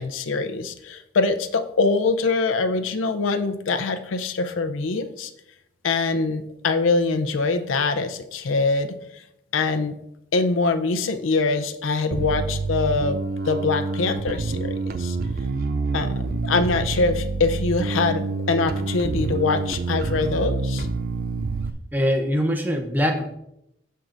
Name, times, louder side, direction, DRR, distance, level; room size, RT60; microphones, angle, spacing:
voice 1, 0.0-5.3 5.8-9.0 9.5-10.0 10.3-13.2 13.5-15.2 15.9-16.1 16.4-20.9, left 3 dB, 85° left, 9 dB, 0.5 m, -23 dB
Bass guitar, 12.1-21.7, right 3 dB, 45° right, 0.4 m, -27 dB
voice 2, 21.9-23.4, equal, 10° right, 4 dB, 0.6 m, -23 dB
13.5 x 4.6 x 2.5 m, 0.80 s
head